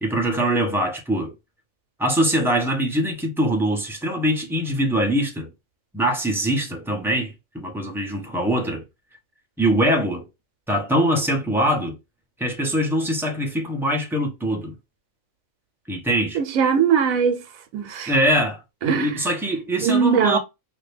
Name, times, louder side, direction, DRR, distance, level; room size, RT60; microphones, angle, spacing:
voice 1, 0.0-1.3 2.0-5.5 5.9-8.8 9.6-10.3 10.7-12.0 12.4-14.7 15.9-16.4 18.1-18.6 18.9-20.4, right 1 dB, 5° right, 0.4 m, -23 dB
voice 2, 16.3-17.4 17.7-18.1 18.8-19.1 19.8-20.4, right 6 dB, 85° right, 1.1 m, -20 dB
2.8 x 2.6 x 3.2 m
omnidirectional pair, 1.4 m